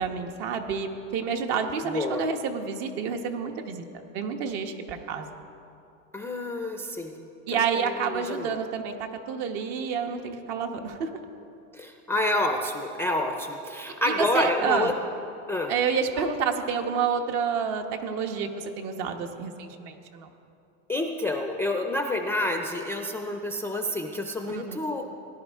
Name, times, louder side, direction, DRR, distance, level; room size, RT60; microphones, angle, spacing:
voice 1, 0.0-3.8 4.1-5.3 7.5-11.1 14.1-14.9 15.7-20.3 24.5-24.8, right 6 dB, 65° right, 5 dB, 1.3 m, -29 dB
voice 2, 1.9-2.3 6.1-8.6 11.7-15.0 15.5-15.8 16.2-16.3 20.9-25.1, left 1 dB, 5° left, 4 dB, 0.4 m, -28 dB
18.5 x 11.0 x 3.6 m, 2.7 s
supercardioid pair, 130°, 40 cm